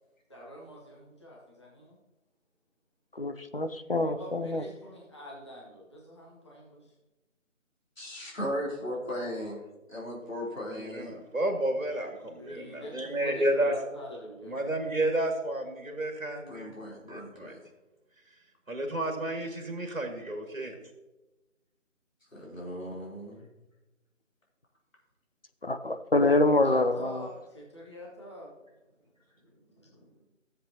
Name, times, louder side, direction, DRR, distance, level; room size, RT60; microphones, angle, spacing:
voice 1, 0.3-2.0 4.0-7.0 12.4-14.8 26.6-28.6 30.0-30.2, equal, 20° left, -3 dB, 1.0 m, -45 dB
voice 2, 3.2-4.6 25.6-27.2, left 2 dB, 45° left, 9 dB, 0.6 m, -26 dB
voice 3, 8.0-9.6 9.9-11.2 16.5-17.6 22.3-23.5, equal, 75° left, -4 dB, 3.5 m, -37 dB
voice 4, 10.7-13.7 14.4-16.7 17.1-17.6 18.7-20.8, right 1 dB, 80° right, 3 dB, 1.7 m, -31 dB
14.5 x 7.5 x 2.8 m, 1.1 s
figure-of-eight pair, 160°, 40 cm